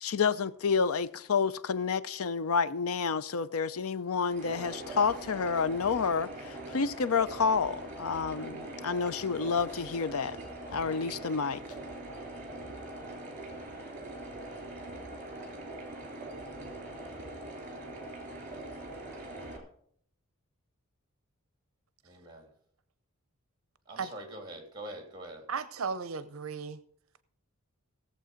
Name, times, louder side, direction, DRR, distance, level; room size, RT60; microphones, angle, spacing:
voice 1, 0.0-10.4 10.7-11.6, left 5 dB, 80° left, 0.5 m, -29 dB
sound 1, 4.3-19.6, right 2 dB, 35° right, 3.7 m, -42 dB
voice 2, 22.0-22.5 23.8-25.5, right 1 dB, 20° right, 3.2 m, -44 dB
voice 3, 25.5-26.8, right 5 dB, 70° right, 0.7 m, -35 dB
17.5 x 7.5 x 5.1 m
head